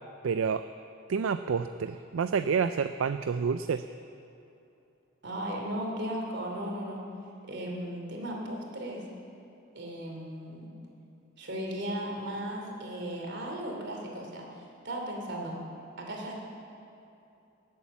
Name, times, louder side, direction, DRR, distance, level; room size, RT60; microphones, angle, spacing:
voice 1, 0.2-0.6 1.1-3.8, right 6 dB, 75° right, 11 dB, 0.4 m, -28 dB
voice 2, 5.2-7.0 7.5-9.1 9.7-10.7 11.4-14.5 14.8-15.6 16.0-16.4, right 1 dB, 60° right, 0 dB, 2.9 m, -36 dB
18.5 x 8.5 x 7.2 m, 2.8 s
head